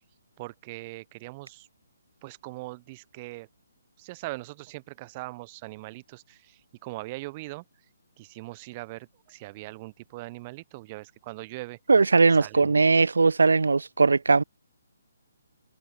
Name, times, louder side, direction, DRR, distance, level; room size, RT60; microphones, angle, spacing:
voice 1, 0.4-1.7 2.2-3.5 4.0-7.6 8.2-11.8 12.4-12.9, right 21 dB, 25° right, 1.1 m, -41 dB
voice 2, 11.9-14.4, right 4 dB, 65° right, 0.4 m, -19 dB
figure-of-eight pair, 135°, 0 cm